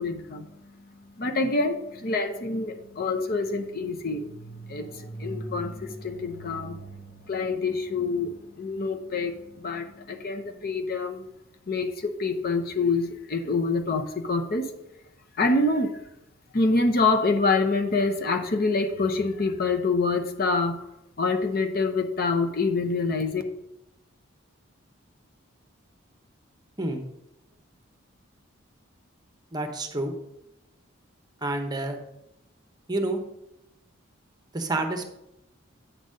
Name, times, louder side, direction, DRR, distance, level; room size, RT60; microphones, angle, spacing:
voice 1, 0.0-11.2 11.7-14.7 15.4-15.9 16.5-20.8 21.2-23.4, left 3 dB, 45° left, 5 dB, 0.7 m, -26 dB
sound 1, 1.9-11.7, right 1 dB, 20° left, 1.9 m, -45 dB
voice 2, 29.5-30.1 31.4-32.0 32.9-33.2 34.5-35.1, right 2 dB, 20° right, 4 dB, 0.8 m, -28 dB
9.0 x 4.0 x 6.3 m, 0.87 s
head